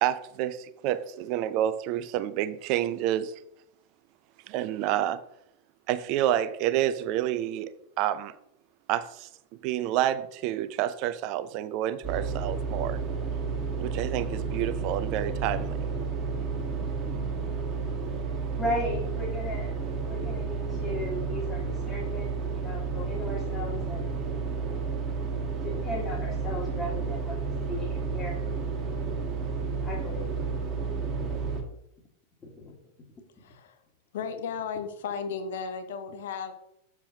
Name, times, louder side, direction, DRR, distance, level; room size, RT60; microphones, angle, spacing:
voice 1, 0.0-3.3 4.5-5.2 5.9-7.7 8.0-8.3 8.9-9.3 9.6-13.0 13.8-15.8, right 12 dB, 40° right, 0.5 m, -28 dB
sound 1, 12.0-31.6, right 4 dB, 25° right, 1.6 m, -31 dB
voice 2, 16.8-17.6 18.1-18.2 18.5-19.8 20.1-24.0 24.7-24.8 25.6-27.4 27.7-28.4 28.8-29.3 29.8-30.3 31.1-31.3 32.4-32.8, left 1 dB, 25° left, 1.6 m, -36 dB
voice 3, 33.4-33.8 34.1-36.5, left 6 dB, 55° left, 0.9 m, -35 dB
7.3 x 7.1 x 2.8 m
figure-of-eight pair, 90°, 0 cm